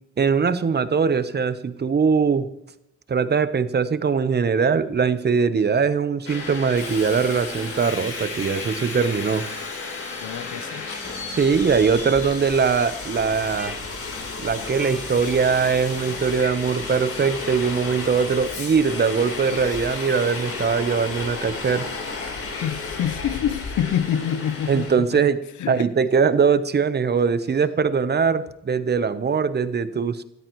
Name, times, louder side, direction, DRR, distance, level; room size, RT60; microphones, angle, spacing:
voice 1, 0.2-2.5 3.1-9.4 11.3-13.8 14.4-21.9 24.7-30.2, right 5 dB, 35° right, 13 dB, 1.0 m, -21 dB
Subway metro underground, 6.2-24.9, left 4 dB, 50° left, 3.8 m, -33 dB
sound 1, 10.1-16.2, equal, 5° right, 2.5 m, -46 dB
voice 2, 10.2-10.9 22.6-25.2 25.6-25.9, left 9 dB, 75° left, 12 dB, 0.8 m, -27 dB
19.0 x 13.5 x 3.1 m, 0.86 s
cardioid pair, 90°, 30 cm